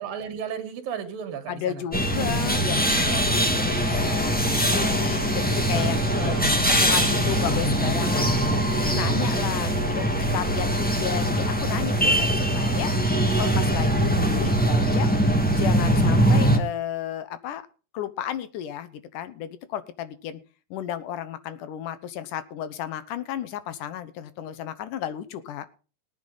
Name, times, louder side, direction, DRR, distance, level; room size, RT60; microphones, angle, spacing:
voice 1, 0.0-1.9 6.1-6.6 8.9-10.2, right 7 dB, 90° right, 7 dB, 3.5 m, -35 dB
voice 2, 1.5-4.3 4.6-8.3 8.7-12.9 13.4-15.1 15.5-17.6 17.9-20.4 20.7-25.7, left 10 dB, 75° left, 13 dB, 2.4 m, -33 dB
sound 1, 1.9-16.6, equal, 5° left, 0.8 m, -22 dB
18.5 x 9.2 x 4.0 m, 0.35 s
omnidirectional pair, 3.9 m